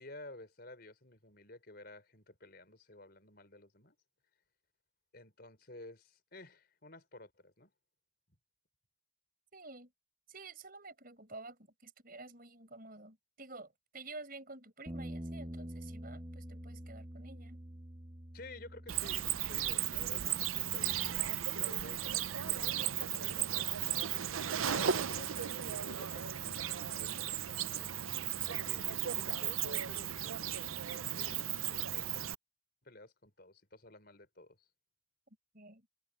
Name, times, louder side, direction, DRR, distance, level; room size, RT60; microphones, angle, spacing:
voice 1, 0.0-3.9 5.1-7.7 18.3-32.3 32.8-34.6, left 2 dB, 50° left, 4.6 m, -53 dB
voice 2, 9.5-9.9 10.3-17.6 35.5-35.9, right 3 dB, 45° right, 5.8 m, -50 dB
sound 1, 14.9-21.1, right 1 dB, 25° right, 1.1 m, -47 dB
Cricket, 18.9-32.3, right 10 dB, 90° right, 0.7 m, -35 dB
head